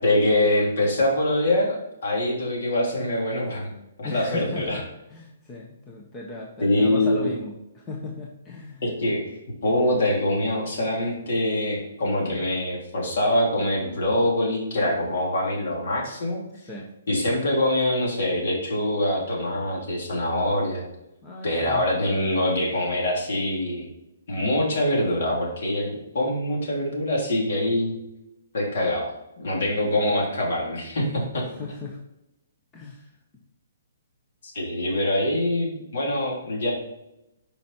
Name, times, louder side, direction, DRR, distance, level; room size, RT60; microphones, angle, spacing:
voice 1, 0.0-3.7 4.0-4.8 6.6-7.3 8.8-16.4 17.1-20.8 21.4-23.9 24.3-27.9 28.5-29.1 29.4-31.4 34.4-36.7, left 1 dB, 55° left, -2 dB, 3.5 m, -24 dB
voice 2, 4.0-4.8 5.1-8.9 16.6-16.9 21.2-21.9 25.9-26.0 29.8-29.9 31.5-32.0 32.7-33.2, left 3 dB, 15° left, -1 dB, 0.8 m, -37 dB
9.1 x 5.5 x 4.4 m, 0.89 s
hypercardioid pair, 175°, 0 cm